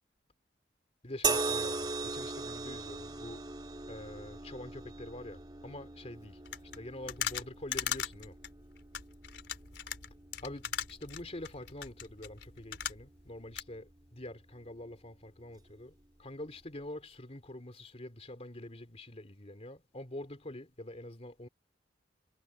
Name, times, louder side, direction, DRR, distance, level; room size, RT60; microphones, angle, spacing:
voice 1, 1.0-3.4 3.9-6.4 6.7-8.4 10.4-21.5, left 1 dB, 35° left, 2.8 m, -45 dB
sound 1, 1.2-14.6 15.5-15.7, right 3 dB, 25° right, 2.5 m, -40 dB
sound 2, 6.4-13.3 13.5-13.6, left 9 dB, 70° left, 4.7 m, -39 dB
head